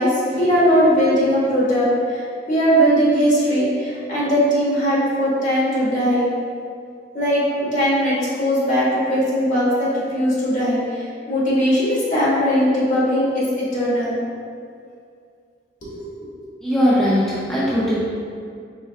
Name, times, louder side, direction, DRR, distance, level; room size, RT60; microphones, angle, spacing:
voice 1, 0.0-6.3 7.1-7.4 7.7-14.2 15.8-16.1, equal, 45° left, -8 dB, 1.5 m, -19 dB
voice 2, 16.6-18.0, equal, 5° left, -10 dB, 0.6 m, -19 dB
4.5 x 3.3 x 3.4 m, 2.3 s
head